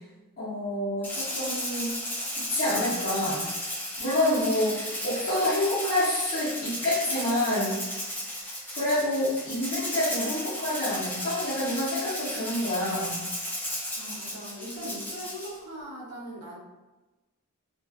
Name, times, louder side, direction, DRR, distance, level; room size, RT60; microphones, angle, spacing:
voice 1, 0.4-1.9 2.5-3.4 4.0-7.8 8.7-13.2, left 1 dB, 40° left, -14 dB, 0.9 m, -27 dB
Rattle (instrument), 1.0-15.6, left 1 dB, 10° left, 0.5 m, -34 dB
voice 2, 4.7-5.0 14.0-16.6, equal, 55° right, -8 dB, 0.8 m, -40 dB
2.4 x 2.3 x 2.3 m, 1.1 s
head